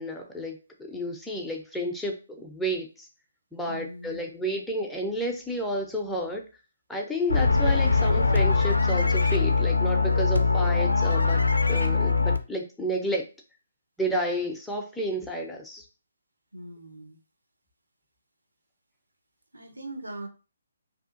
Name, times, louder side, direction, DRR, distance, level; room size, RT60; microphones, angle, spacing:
voice 1, 0.0-3.1 3.5-6.4 6.9-11.4 11.7-13.3 14.0-15.8, equal, 5° left, 0 dB, 0.4 m, -31 dB
voice 2, 3.6-4.2 16.5-17.2 19.5-20.3, right 1 dB, 75° right, 4 dB, 0.6 m, -40 dB
sound 1, 7.3-12.4, left 4 dB, 75° left, 0.3 m, -22 dB
2.7 x 2.4 x 2.4 m, 0.32 s
figure-of-eight pair, 140°, 0 cm